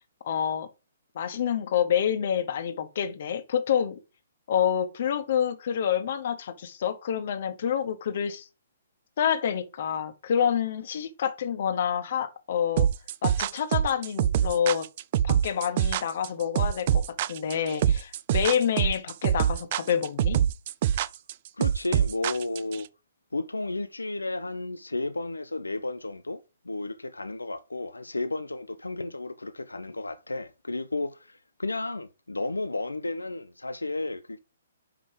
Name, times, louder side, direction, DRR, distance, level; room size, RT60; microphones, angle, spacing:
voice 1, 0.2-0.7 1.1-4.0 4.5-8.5 9.2-12.9 13.2-14.9 15.2-17.0 17.3-20.4, left 8 dB, 50° left, 1.1 m, -27 dB
sound 1, 12.8-22.8, right 10 dB, 40° right, 0.4 m, -25 dB
voice 2, 21.6-22.9 23.3-34.4, left 2 dB, 80° left, 0.5 m, -33 dB
5.6 x 4.8 x 4.8 m
figure-of-eight pair, 125°, 0 cm